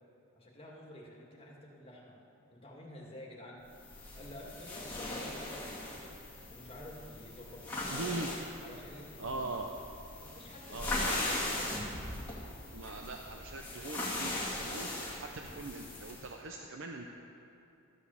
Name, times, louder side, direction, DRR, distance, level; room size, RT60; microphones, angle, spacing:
voice 1, 0.4-2.2 2.5-3.6 4.1-6.1 6.5-8.1 8.6-9.5 10.1-11.8, left 1 dB, 25° left, -3 dB, 2.0 m, -50 dB
sound 1, 3.8-16.3, left 2 dB, 10° left, 2.0 m, -39 dB
voice 2, 7.9-8.3 9.2-9.7 10.7-11.2 12.7-17.1, right 3 dB, 55° right, 2 dB, 0.7 m, -41 dB
13.5 x 8.3 x 7.0 m, 2.8 s
head